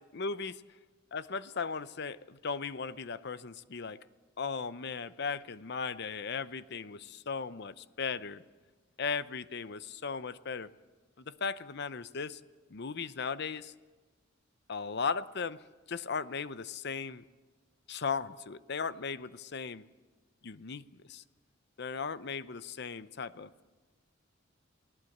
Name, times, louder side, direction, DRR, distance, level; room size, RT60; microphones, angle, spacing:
voice 1, 0.1-0.5 1.1-4.0 4.4-8.4 9.0-10.7 11.2-12.4 12.7-13.7 14.7-17.2 17.9-19.8 20.4-21.2 21.8-23.5, left 5 dB, 55° left, 14 dB, 0.7 m, -37 dB
29.5 x 19.5 x 7.9 m, 1.3 s
head